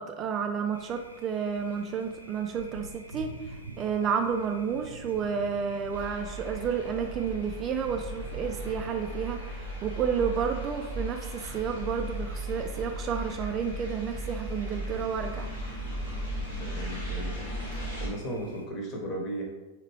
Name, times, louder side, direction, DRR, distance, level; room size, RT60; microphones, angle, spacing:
voice 1, 0.0-15.5, right 7 dB, 30° right, 5 dB, 0.3 m, -31 dB
Thunder, 0.7-18.6, right 1 dB, 90° right, 0.5 m, -47 dB
sound 1, 5.9-18.1, right 1 dB, 70° left, 1.3 m, -36 dB
voice 2, 16.6-17.5 18.0-19.4, right 1 dB, 35° left, 0 dB, 1.1 m, -36 dB
4.7 x 3.2 x 3.1 m, 1.1 s
figure-of-eight pair, 90°, 0 cm